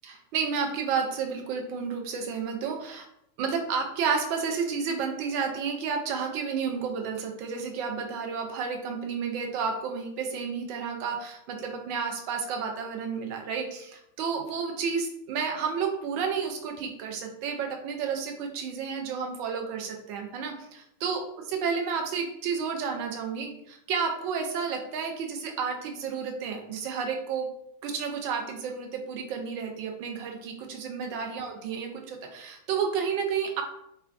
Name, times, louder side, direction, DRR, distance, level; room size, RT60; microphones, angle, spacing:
voice 1, 0.0-3.1 3.4-27.5 27.8-33.6, right 6 dB, 45° right, 3 dB, 0.5 m, -31 dB
3.4 x 2.2 x 2.2 m, 0.76 s
figure-of-eight pair, 90°, 0 cm